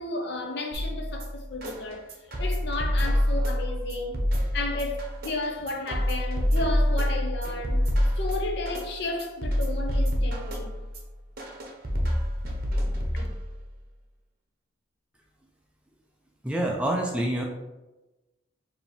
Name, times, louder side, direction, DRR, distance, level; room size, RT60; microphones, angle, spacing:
voice 1, 0.0-2.1 2.4-4.2 4.5-7.8 8.2-10.8 12.4-12.6 12.9-13.3, left 2 dB, 55° left, 0.6 m, -33 dB
sound 1, 0.7-13.7, equal, 45° right, 0.8 m, -27 dB
voice 2, 16.4-17.4, right 1 dB, 5° right, 0.3 m, -26 dB
4.8 x 2.7 x 3.3 m
head